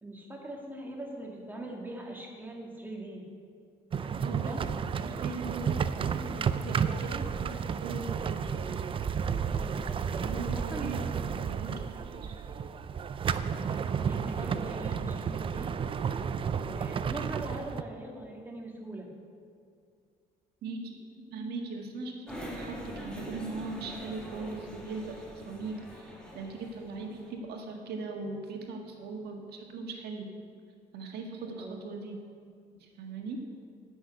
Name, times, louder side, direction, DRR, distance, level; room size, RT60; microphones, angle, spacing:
voice 1, 0.0-3.3 4.0-4.6 9.4-11.5 13.5-15.7 16.6-19.1 31.5-31.8, right 1 dB, 10° right, -1 dB, 2.0 m, -42 dB
sound 1, 3.9-17.8, right 7 dB, 30° right, 0.4 m, -32 dB
voice 2, 4.2-4.5 5.0-8.8 10.2-12.4 20.6-30.3 30.9-32.2 32.8-33.4, right 3 dB, 70° right, 2 dB, 1.7 m, -40 dB
sound 2, 22.3-27.3, equal, 5° left, 1.9 m, -44 dB
9.9 x 6.4 x 7.8 m, 2.3 s
cardioid pair, 110°, 17 cm